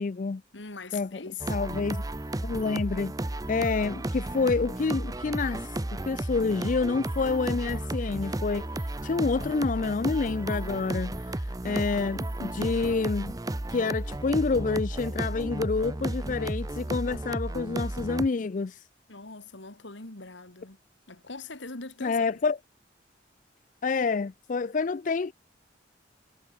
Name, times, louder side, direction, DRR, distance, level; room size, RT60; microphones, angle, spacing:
voice 1, 0.0-0.4 0.9-1.1 1.5-2.0 2.4-13.3 13.7-18.8 22.0-22.6 23.8-25.3, left 4 dB, 45° left, 0.4 m, -28 dB
voice 2, 0.5-1.5 19.1-20.8 21.1-22.3, left 4 dB, 80° left, 2.5 m, -41 dB
sound 1, 1.4-18.3, right 1 dB, 20° right, 0.6 m, -33 dB
head